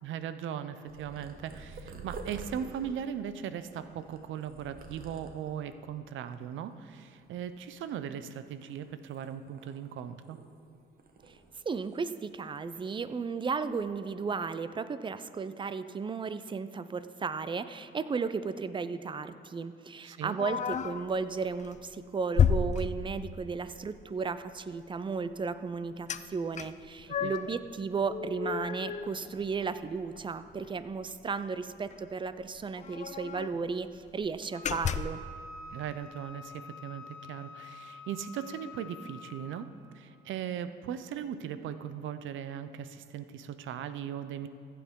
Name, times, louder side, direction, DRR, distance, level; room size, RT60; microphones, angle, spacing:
voice 1, 0.0-10.4 20.0-20.4 27.2-27.3 35.7-39.7 39.9-44.5, right 9 dB, 75° right, 12 dB, 0.6 m, -38 dB
Purr, 0.9-5.7 6.3-6.8 7.0-8.2 8.6-10.7 11.0-12.3 12.5-12.9 13.5-13.8, right 3 dB, 50° right, 1.1 m, -48 dB
voice 2, 11.7-35.2, right 5 dB, 25° right, 13 dB, 0.4 m, -34 dB
sound 1, 20.4-21.1 21.6-21.8 22.4-23.5 26.1-26.2 26.5-27.6 28.0-29.8 30.2-30.3 30.6-30.8 31.9-32.0 32.2-32.3 32.8-33.6 34.1-34.2 34.6-35.3, left 7 dB, 40° left, 0.4 m, -31 dB
Wind instrument woodwind instrument, 34.5-39.7, left 3 dB, 20° left, 1.2 m, -48 dB
15.0 x 8.4 x 3.7 m, 2.5 s
cardioid pair, 90°, 20 cm